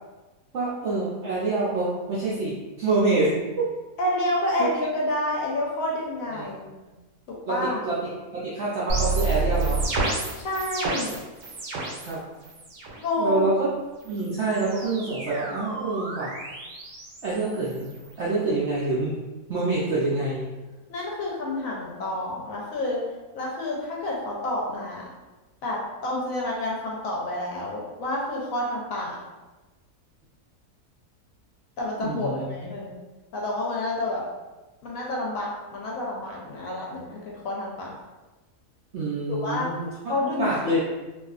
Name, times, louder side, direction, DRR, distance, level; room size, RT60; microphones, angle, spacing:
voice 1, 0.5-3.4 4.6-4.7 6.3-6.5 7.5-9.8 12.0-12.2 13.2-13.7 14.0-16.3 17.2-17.9 18.2-19.1 19.5-20.5 32.0-32.4 38.9-39.9 40.4-40.8, right 3 dB, 70° right, -7 dB, 0.6 m, -26 dB
voice 2, 4.0-6.6 7.5-7.8 10.3-11.2 13.0-13.5 20.9-23.0 23.4-25.1 25.6-29.2 31.8-33.0 33.3-34.2 34.8-38.0 39.3-39.7 40.1-40.8, left 1 dB, 70° left, -3 dB, 0.9 m, -29 dB
sound 1, 8.9-12.1 12.4-13.0 14.0-18.1, right 3 dB, 90° right, 1.1 m, -30 dB
2.6 x 2.3 x 2.3 m, 1.2 s
omnidirectional pair, 1.6 m